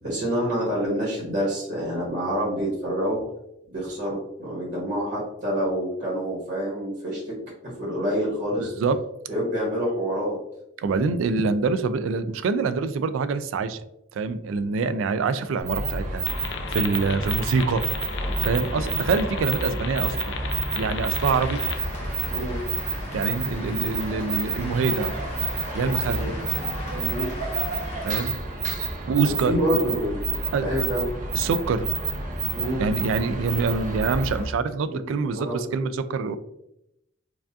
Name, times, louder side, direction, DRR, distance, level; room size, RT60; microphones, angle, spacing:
voice 1, 0.0-3.2 3.7-7.3 7.6-8.7 9.3-10.4 18.7-18.9 22.3-22.6 26.0-26.4 26.9-27.3 29.2-30.2 30.6-31.0 32.5-32.9 34.9-35.9, equal, 55° right, -6 dB, 1.4 m, -27 dB
voice 2, 8.6-9.0 10.8-13.8 14.1-16.2 16.7-17.8 18.4-20.4 20.8-21.6 23.1-25.1 25.7-26.3 28.0-28.3 29.1-29.5 30.5-30.9 31.3-31.9 32.8-36.4, right 4 dB, 85° right, 13 dB, 0.3 m, -25 dB
sound 1, 15.6-34.5, right 4 dB, 40° right, 0.6 m, -29 dB
sound 2, 16.3-21.8, left 6 dB, 65° left, 0.4 m, -36 dB
Cheering / Applause, 21.1-28.3, left 2 dB, 35° left, 0.9 m, -40 dB
4.7 x 2.4 x 2.6 m, 0.82 s
head